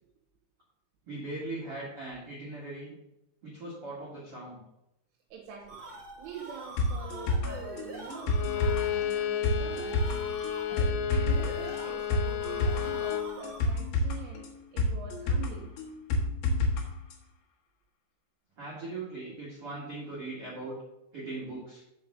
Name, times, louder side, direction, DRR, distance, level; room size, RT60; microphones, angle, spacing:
voice 1, 1.1-2.9 3.4-4.6 18.6-20.8 21.1-21.8, right 2 dB, 60° right, -6 dB, 1.4 m, -39 dB
voice 2, 5.3-5.8 6.2-10.2 10.7-15.7, right 6 dB, 80° right, -2 dB, 3.5 m, -45 dB
sound 1, 5.4-13.9, right 2 dB, 30° right, 2.6 m, -45 dB
sound 2, 6.8-16.8 17.1-17.2, left 2 dB, 70° left, 2.3 m, -30 dB
Bowed string instrument, 8.3-13.3, left 10 dB, 90° left, 3.3 m, -33 dB
6.9 x 5.2 x 6.7 m, 0.85 s
omnidirectional pair, 5.6 m